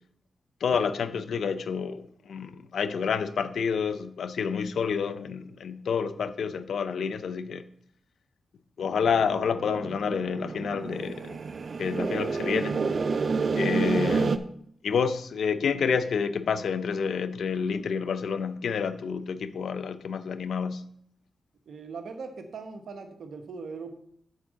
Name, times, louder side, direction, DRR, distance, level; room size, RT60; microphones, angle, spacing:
voice 1, 0.6-7.6 8.8-11.4 11.8-12.8 13.5-14.5 14.8-20.8, left 6 dB, 75° left, 0.5 m, -29 dB
sound 1, 8.9-14.4, right 4 dB, 55° right, 0.6 m, -29 dB
voice 2, 21.7-23.9, right 4 dB, 75° right, 1.1 m, -40 dB
8.0 x 4.5 x 6.3 m
cardioid pair, 55°, 0 cm